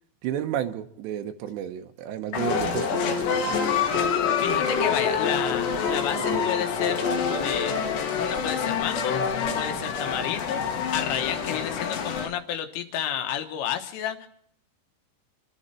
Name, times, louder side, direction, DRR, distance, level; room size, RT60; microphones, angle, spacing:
voice 1, 0.2-3.8 6.1-6.5 9.7-9.9, right 10 dB, 75° right, 6 dB, 2.8 m, -33 dB
sound 1, 2.3-12.3, left 7 dB, 65° left, 3.5 m, -28 dB
sound 2, 2.4-12.3, left 3 dB, 20° left, 1.7 m, -31 dB
voice 2, 4.4-7.8 8.2-9.3 9.6-10.7 10.9-14.3, left 9 dB, 80° left, 6 dB, 3.9 m, -31 dB
27.5 x 12.0 x 4.3 m, 0.65 s
omnidirectional pair, 5.7 m